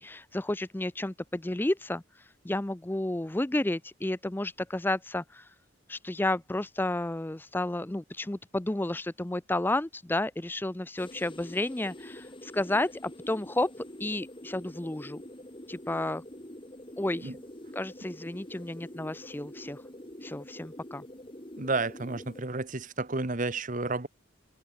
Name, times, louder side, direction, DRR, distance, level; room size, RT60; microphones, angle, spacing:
voice 1, 0.0-5.5 5.9-15.2 15.7-16.2 17.0-17.3 17.7-19.8 20.2-21.0, left 1 dB, 10° left, 0.5 m, -32 dB
sound 1, 11.0-22.4, left 1 dB, 25° left, 3.3 m, -46 dB
voice 2, 21.6-24.1, right 3 dB, 40° right, 1.2 m, -31 dB
open air
head